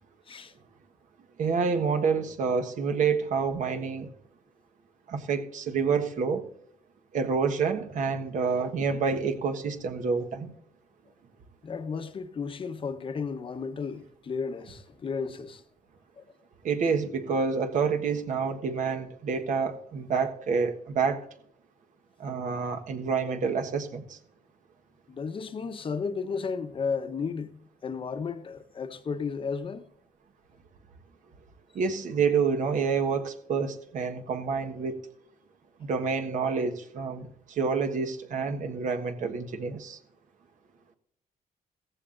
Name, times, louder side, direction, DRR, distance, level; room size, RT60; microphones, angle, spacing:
voice 1, 1.4-4.1 5.1-6.5 7.1-10.5 16.6-21.2 22.2-24.2 31.7-35.0 35.8-40.0, right 5 dB, 65° right, 1.4 m, -28 dB
voice 2, 11.6-15.6 16.2-16.3 25.1-29.9, left 5 dB, 35° left, 1.0 m, -33 dB
16.0 x 15.0 x 2.6 m
cardioid pair, 110°, 14 cm